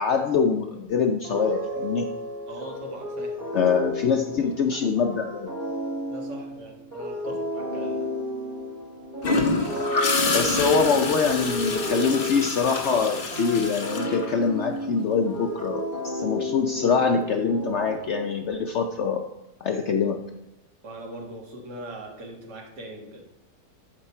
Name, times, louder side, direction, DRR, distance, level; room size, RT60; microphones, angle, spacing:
voice 1, 0.0-2.1 3.5-5.5 10.2-19.2 19.6-20.2, left 5 dB, 70° left, 4 dB, 0.7 m, -24 dB
sound 1, 1.2-18.4, left 1 dB, 35° right, 2.8 m, -33 dB
voice 2, 2.5-3.4 4.1-4.8 6.1-8.1 20.8-23.3, right 1 dB, 85° right, 1 dB, 2.0 m, -41 dB
Gurgling / Toilet flush, 9.2-15.0 17.0-17.2, left 3 dB, 40° left, 1.1 m, -27 dB
9.1 x 6.9 x 4.3 m, 0.90 s
omnidirectional pair, 1.8 m